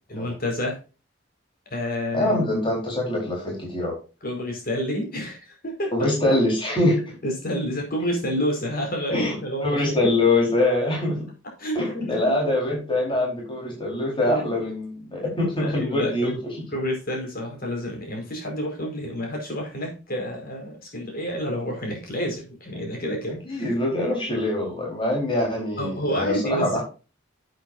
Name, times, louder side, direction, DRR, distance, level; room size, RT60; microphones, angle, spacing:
voice 1, 0.1-0.8 1.7-2.3 4.2-6.1 7.2-10.0 11.6-12.4 14.3-14.7 15.6-16.3 16.7-23.7 25.8-26.8, equal, 50° left, 1 dB, 4.9 m, -29 dB
voice 2, 2.1-4.0 5.9-7.2 9.1-9.3 9.6-11.3 11.7-16.6 23.5-26.8, left 1 dB, 25° left, -2 dB, 4.4 m, -24 dB
11.0 x 9.2 x 2.6 m, 0.32 s
head